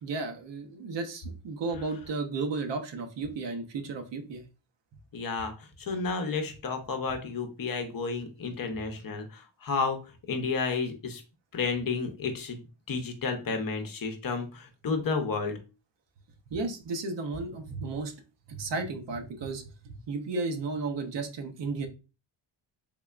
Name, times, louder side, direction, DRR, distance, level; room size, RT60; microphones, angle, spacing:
voice 1, 0.0-4.5 16.5-18.1 18.5-21.9, right 3 dB, 60° right, 5 dB, 0.8 m, -34 dB
voice 2, 5.1-10.0 10.3-11.2 11.5-15.6, left 4 dB, 45° left, 5 dB, 0.7 m, -31 dB
3.6 x 3.3 x 2.3 m, 0.31 s
wide cardioid pair, 140°, 49 cm